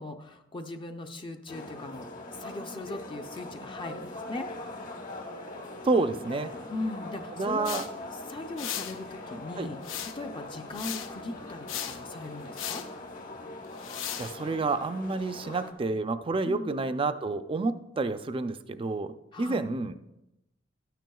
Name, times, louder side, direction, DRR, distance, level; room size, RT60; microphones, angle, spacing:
voice 1, 0.0-4.5 6.7-7.9 8.3-12.9 16.4-16.8 19.3-19.7, left 2 dB, 25° left, 5 dB, 0.5 m, -39 dB
sound 1, 1.5-15.7, left 2 dB, 45° left, 1.2 m, -42 dB
voice 2, 5.8-6.5 7.4-7.9 9.6-9.7 14.2-19.1 19.4-20.0, right 3 dB, 30° right, 10 dB, 0.4 m, -29 dB
sound 2, 7.6-7.9 8.6-9.0 9.8-10.3 10.7-11.1 11.7-12.0 12.6-12.9 13.8-14.4, left 10 dB, 85° left, 0.6 m, -36 dB
13.0 x 9.1 x 2.3 m, 0.92 s
head